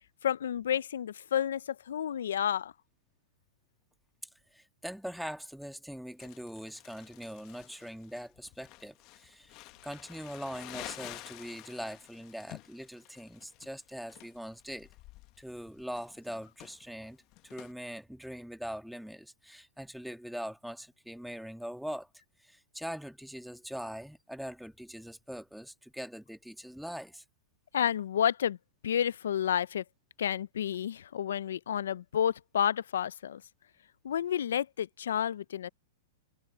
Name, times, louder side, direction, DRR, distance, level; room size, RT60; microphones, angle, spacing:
voice 1, 0.2-2.7 27.7-28.6 28.8-29.8 30.2-33.4 34.0-35.7, left 9 dB, 80° left, 0.6 m, -30 dB
voice 2, 4.5-14.9 15.4-22.1 22.4-27.2, equal, ahead, 1.9 m, -42 dB
Crumpling crinkling, 6.2-17.7, left 20 dB, 40° left, 1.6 m, -50 dB
hypercardioid pair, 125°, 0 cm